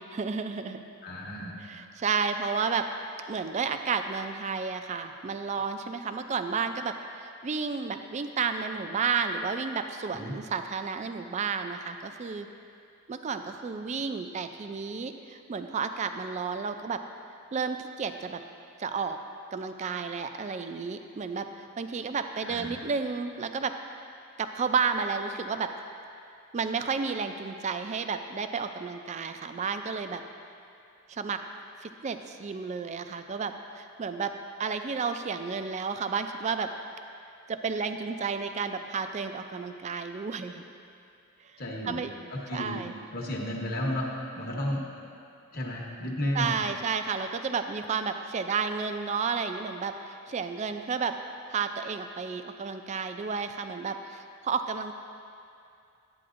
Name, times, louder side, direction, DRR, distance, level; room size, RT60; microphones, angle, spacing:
voice 1, 0.1-0.8 1.6-2.9 3.3-12.5 13.1-17.0 17.5-18.4 18.8-19.2 19.5-23.7 24.4-25.7 26.5-30.2 31.1-31.4 31.8-34.3 34.6-36.7 37.5-40.6 41.9-42.1 42.5-42.9 46.3-51.2 51.5-54.9, right 5 dB, 30° right, 8 dB, 0.3 m, -32 dB
voice 2, 1.0-1.6 10.1-10.3 22.4-22.9 41.6-42.0 42.3-42.8 43.1-44.1 44.4-44.8 45.5-46.5, left 1 dB, 45° left, -2 dB, 1.0 m, -32 dB
11.5 x 8.6 x 2.5 m, 2.5 s
head